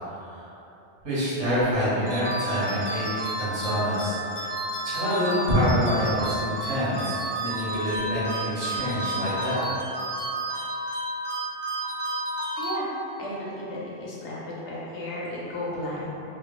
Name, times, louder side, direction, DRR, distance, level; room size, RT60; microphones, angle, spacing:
voice 1, 0.2-0.5 1.0-4.1 4.8-9.7, equal, 80° right, -9 dB, 1.4 m, -26 dB
sound 1, 2.1-13.3, right 1 dB, 40° left, 0.4 m, -31 dB
voice 2, 12.6-12.9 13.2-14.4 14.6-16.1, left 1 dB, 90° left, -6 dB, 1.1 m, -33 dB
3.4 x 2.2 x 3.0 m, 2.9 s
omnidirectional pair, 1.2 m